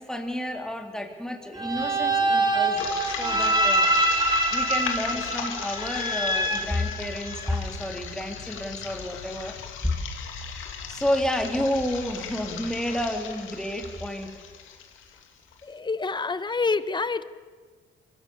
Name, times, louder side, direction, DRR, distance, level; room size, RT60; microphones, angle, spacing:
voice 1, 0.0-3.9 4.5-9.5 9.8-9.9 10.9-14.3, left 1 dB, 5° left, 3 dB, 3.2 m, -30 dB
sound 1, 1.6-7.6, right 1 dB, 20° right, 3.0 m, -25 dB
sound 2, 2.8-15.6, left 8 dB, 90° left, 2.5 m, -37 dB
voice 2, 15.6-17.2, left 4 dB, 20° left, 14 dB, 1.0 m, -27 dB
24.5 x 16.5 x 7.2 m, 1.5 s
cardioid pair, 90°, 20 cm